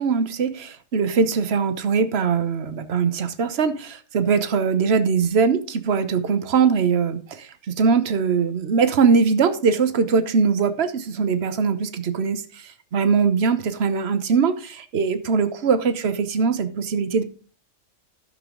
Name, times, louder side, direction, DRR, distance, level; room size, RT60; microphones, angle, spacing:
voice 1, 0.0-17.2, right 5 dB, 60° right, 11 dB, 1.2 m, -21 dB
12.5 x 7.1 x 3.8 m, 0.39 s
omnidirectional pair, 1.3 m